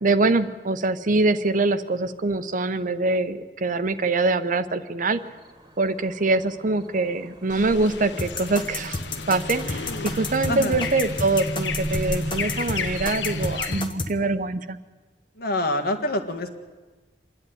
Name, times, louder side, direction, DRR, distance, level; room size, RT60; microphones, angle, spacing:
voice 1, 0.0-5.2 5.8-9.0 9.3-14.8, right 3 dB, 50° right, 11 dB, 0.8 m, -24 dB
sound 1, 5.2-13.5, right 1 dB, 20° right, 1.6 m, -35 dB
sound 2, 7.5-13.8, left 5 dB, 80° left, 1.0 m, -33 dB
sound 3, 8.2-14.1, left 3 dB, 30° left, 1.2 m, -31 dB
voice 2, 10.5-10.9 15.4-16.5, left 1 dB, 60° left, 6 dB, 1.7 m, -26 dB
26.0 x 11.0 x 9.5 m, 1.3 s
head